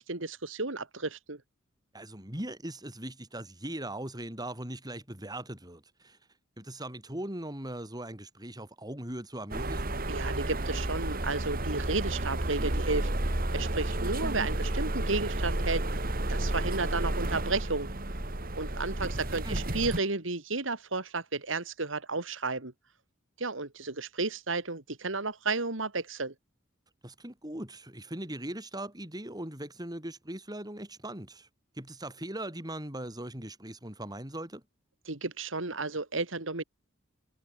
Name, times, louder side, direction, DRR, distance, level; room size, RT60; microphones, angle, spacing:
voice 1, 0.0-1.4 10.1-16.0 16.3-17.9 18.6-22.7 23.4-26.3 35.1-36.6, right 3 dB, 75° right, 2.6 m, -33 dB
voice 2, 1.9-6.2 6.6-10.0 19.4-19.6 27.0-31.5 31.8-34.6, right 1 dB, 20° right, 7.7 m, -40 dB
sound 1, 9.5-20.0, right 1 dB, 50° right, 2.8 m, -31 dB
head